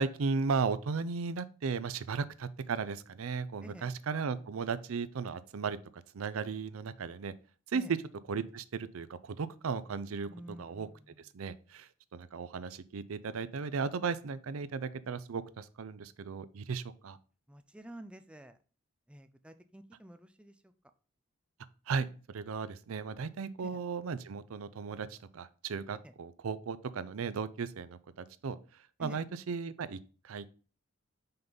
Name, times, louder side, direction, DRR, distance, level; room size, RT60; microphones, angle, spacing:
voice 1, 0.0-7.3 7.7-8.0 8.3-10.3 10.6-10.9 11.2-17.2 21.9-30.0 30.2-30.5, right 5 dB, 85° right, 15 dB, 0.5 m, -36 dB
voice 2, 3.6-3.9 7.7-7.9 10.3-11.2 17.5-18.6 19.1-20.7 23.6-23.8 26.0-26.1 29.0-29.2, right 1 dB, 5° right, 9 dB, 0.4 m, -50 dB
5.7 x 3.9 x 5.2 m, 0.38 s
head